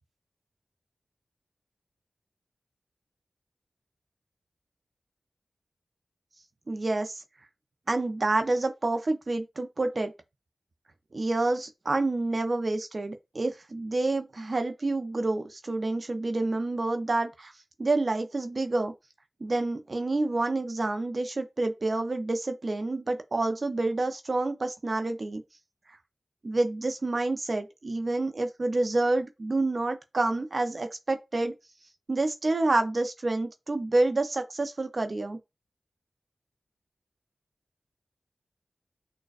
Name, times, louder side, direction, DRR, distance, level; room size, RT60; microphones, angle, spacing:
voice 1, 6.7-7.2 7.9-10.1 11.1-17.5 17.8-18.9 19.4-25.4 26.4-31.5 32.1-35.4, right 2 dB, 55° right, 0.5 m, -28 dB
6.3 x 2.2 x 2.4 m
cardioid pair, 40°, 0 cm